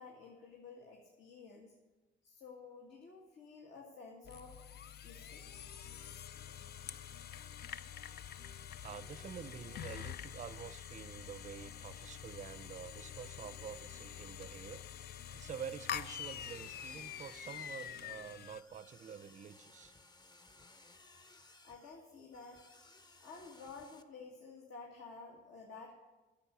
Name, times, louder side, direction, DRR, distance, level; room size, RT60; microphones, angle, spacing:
voice 1, 0.0-1.7 2.2-4.6 5.0-5.4 21.6-22.6 23.2-25.9, left 4 dB, 70° left, -1 dB, 1.9 m, -52 dB
sound 1, 4.2-18.6, left 9 dB, 55° left, 0.5 m, -46 dB
sound 2, 5.4-18.3, left 4 dB, 85° left, 1.3 m, -64 dB
voice 2, 8.8-14.8 15.3-19.9, right 7 dB, 40° right, 15 dB, 0.5 m, -48 dB
sound 3, 16.4-24.0, left 2 dB, 20° left, 0.8 m, -61 dB
10.0 x 7.0 x 6.9 m, 1.1 s
cardioid pair, 90°, 20 cm